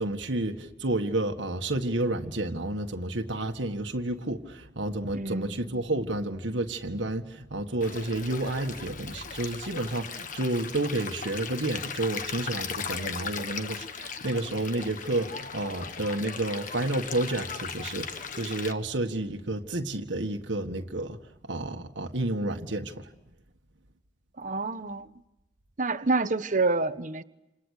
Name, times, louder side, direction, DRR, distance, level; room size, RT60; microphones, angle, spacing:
voice 1, 0.0-21.2 21.4-23.1, right 2 dB, 80° right, 1.7 m, -30 dB
voice 2, 5.1-5.6 24.4-25.1 25.8-27.2, right 3 dB, 45° right, 1.1 m, -28 dB
Stream, 7.8-18.7, left 6 dB, 45° left, 1.5 m, -38 dB
28.5 x 28.0 x 6.6 m
head